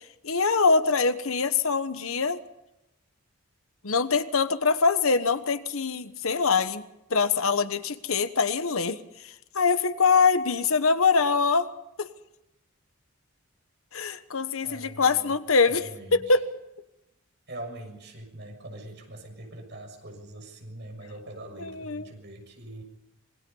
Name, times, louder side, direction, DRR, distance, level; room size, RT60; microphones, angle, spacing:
voice 1, 0.2-2.4 3.8-6.8 7.1-9.0 9.2-11.7 12.0-12.1 13.9-16.4 21.6-22.1, left 4 dB, 75° left, 11 dB, 1.2 m, -24 dB
voice 2, 14.6-15.4 15.7-16.4 17.5-22.8, right 1 dB, 50° right, 3 dB, 6.6 m, -42 dB
27.0 x 21.5 x 5.5 m, 0.88 s
head